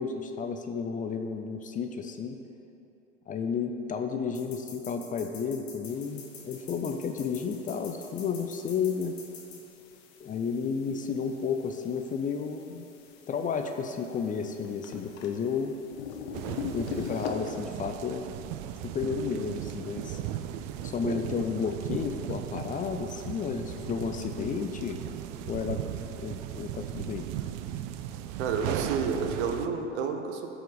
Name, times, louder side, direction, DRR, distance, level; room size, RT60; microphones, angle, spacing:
voice 1, 0.0-2.4 3.3-9.2 10.2-12.8 13.3-15.8 16.7-18.3 18.8-20.2 20.8-25.0 25.4-25.8 26.2-27.3, left 6 dB, 20° left, 6 dB, 0.5 m, -32 dB
sound 1, 4.3-9.6, left 6 dB, 35° left, 2.0 m, -47 dB
sound 2, 5.8-17.3, left 7 dB, 55° left, 1.1 m, -44 dB
sound 3, 16.3-29.7, right 11 dB, 45° right, 0.5 m, -37 dB
voice 2, 28.4-30.5, right 5 dB, 65° right, 5 dB, 1.0 m, -30 dB
14.0 x 4.9 x 4.0 m, 2.9 s
hypercardioid pair, 85°, 37 cm